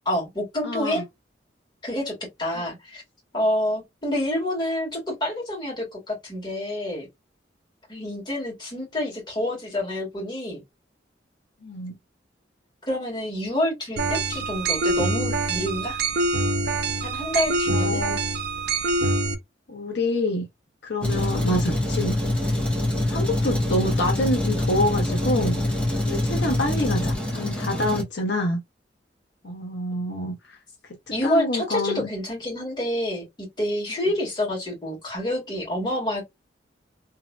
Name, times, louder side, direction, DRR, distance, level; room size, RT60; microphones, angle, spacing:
voice 1, 0.1-1.0 1.8-3.0 3.3-7.1 7.9-10.6 12.9-16.0 17.0-18.0 31.1-36.2, left 1 dB, 25° left, 1.8 m, -28 dB
voice 2, 0.6-1.0 11.6-11.9 17.7-18.2 19.7-20.5 20.8-22.3 23.1-25.6 26.0-28.6 29.4-30.6 31.2-32.1, left 1 dB, 65° left, 0.7 m, -27 dB
sound 1, 14.0-19.3, right 2 dB, 60° right, 0.6 m, -25 dB
Truck, 21.0-28.0, left 1 dB, 5° left, 1.1 m, -25 dB
3.0 x 2.7 x 2.2 m
head